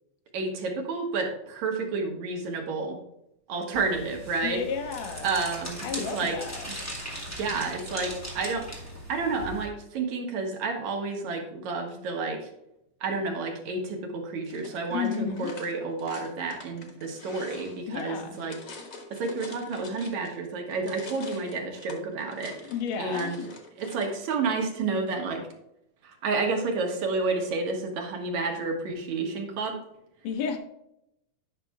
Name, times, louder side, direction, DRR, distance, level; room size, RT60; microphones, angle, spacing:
voice 1, 0.3-3.0 3.5-4.6 5.2-5.8 6.1-6.3 7.3-12.5 13.0-18.6 19.1-22.7 23.0-23.4 23.8-25.5 26.0-29.8, right 3 dB, 65° right, 2 dB, 2.3 m, -30 dB
sound 1, 3.7-9.7, equal, 5° left, 1.7 m, -39 dB
voice 2, 4.4-5.3 5.8-6.7 14.9-15.5 17.9-18.4 22.7-23.5 30.2-30.6, left 6 dB, 65° left, 5 dB, 2.0 m, -32 dB
sound 2, 14.4-20.4 20.7-24.2, left 3 dB, 90° left, 0.7 m, -45 dB
10.0 x 5.8 x 3.5 m, 0.81 s
omnidirectional pair, 3.7 m